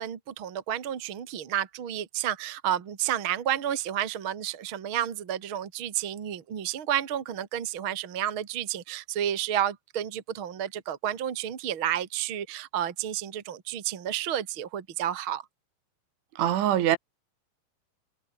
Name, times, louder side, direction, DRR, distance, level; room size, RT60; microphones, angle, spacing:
voice 1, 0.0-15.4, right 11 dB, 45° right, 1.7 m, -31 dB
voice 2, 16.4-17.0, right 11 dB, 75° right, 4.4 m, -23 dB
omnidirectional pair, 5.6 m